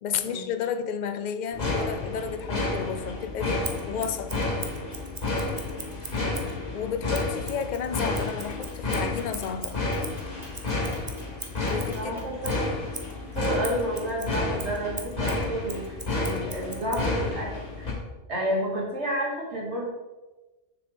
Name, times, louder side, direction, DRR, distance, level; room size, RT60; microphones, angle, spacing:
voice 1, 0.0-4.6 6.7-9.9 11.7-12.2, left 7 dB, 60° left, 0.5 m, -32 dB
sound 1, 1.5-17.9, left 2 dB, 35° left, 1.7 m, -31 dB
Scissors, 3.6-6.6 7.1-12.0 12.4-17.1, right 3 dB, 25° right, 0.5 m, -41 dB
Clock, 8.4-12.4, left 1 dB, ahead, 2.3 m, -50 dB
voice 2, 11.9-12.5 13.3-17.5 17.8-17.9 18.3-19.9, right 1 dB, 70° right, 2.3 m, -31 dB
7.0 x 6.3 x 3.4 m
omnidirectional pair, 1.2 m